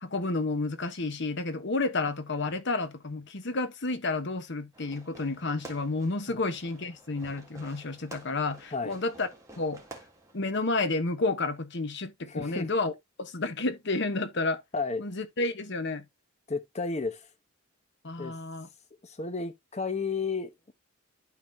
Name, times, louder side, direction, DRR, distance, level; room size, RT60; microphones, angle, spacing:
voice 1, 0.0-9.3 9.6-9.8 10.3-12.9 13.2-14.6 15.0-16.0 18.0-18.7, left 3 dB, 60° left, 1.1 m, -31 dB
Fireworks, 4.7-10.7, right 2 dB, 15° right, 1.8 m, -50 dB
voice 2, 12.3-12.7 14.7-15.0 16.5-17.3 18.2-18.4 19.0-20.7, left 4 dB, 35° left, 0.9 m, -32 dB
12.0 x 4.0 x 2.6 m
head